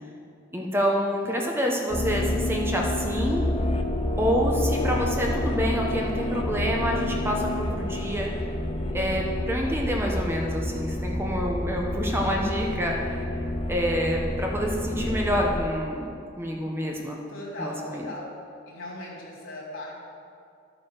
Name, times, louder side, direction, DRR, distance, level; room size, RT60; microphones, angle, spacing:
voice 1, 0.5-3.5 4.2-8.3 8.9-13.4 13.7-17.2 17.6-18.1, equal, 10° right, -1 dB, 1.1 m, -27 dB
sound 1, 1.9-15.6, left 1 dB, 25° left, 0.7 m, -29 dB
voice 2, 17.3-18.3 18.7-19.9, left 1 dB, 70° left, -5 dB, 3.6 m, -37 dB
12.0 x 8.9 x 6.7 m, 2.4 s
head